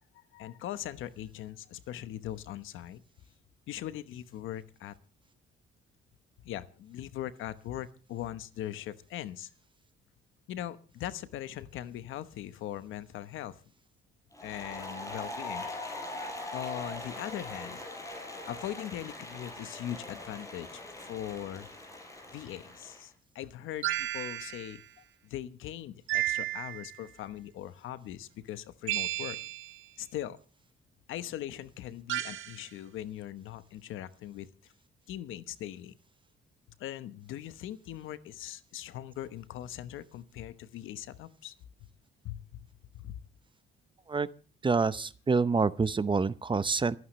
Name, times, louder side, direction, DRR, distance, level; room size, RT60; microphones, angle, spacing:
voice 1, 0.3-3.0 3.7-5.0 6.4-9.5 10.5-13.6 14.4-15.7 16.5-17.8 18.5-21.7 22.3-24.8 25.2-29.4 30.0-30.4 31.1-34.7 35.1-36.0 36.8-41.5 42.2-42.6 42.9-43.2, left 12 dB, 85° left, 13 dB, 1.1 m, -40 dB
Applause, 14.3-23.0, left 2 dB, 15° left, 4.9 m, -42 dB
sound 1, 23.8-24.8 26.1-27.0 28.9-29.8 32.1-32.6, right 15 dB, 85° right, 1.3 m, -33 dB
voice 2, 44.6-47.0, right 4 dB, 25° right, 16 dB, 0.7 m, -27 dB
27.5 x 9.5 x 3.2 m, 0.38 s
cardioid pair, 90°, 20 cm